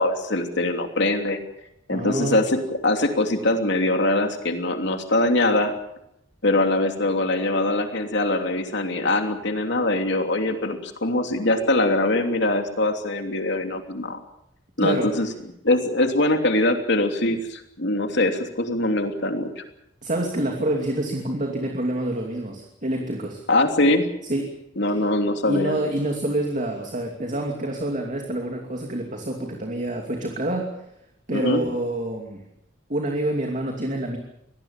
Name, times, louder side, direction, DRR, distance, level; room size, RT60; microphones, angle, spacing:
voice 1, 0.0-1.4 1.9-5.7 6.4-14.2 14.8-15.3 15.6-19.6 23.5-24.0 24.8-25.8 31.3-31.6, left 2 dB, 65° left, 5 dB, 3.0 m, -22 dB
voice 2, 1.9-2.4 14.8-15.2 20.0-23.4 24.3-24.6 25.5-30.7 31.3-32.4 32.9-34.2, right 1 dB, 40° right, 3 dB, 2.7 m, -27 dB
24.0 x 19.0 x 7.4 m, 0.79 s
head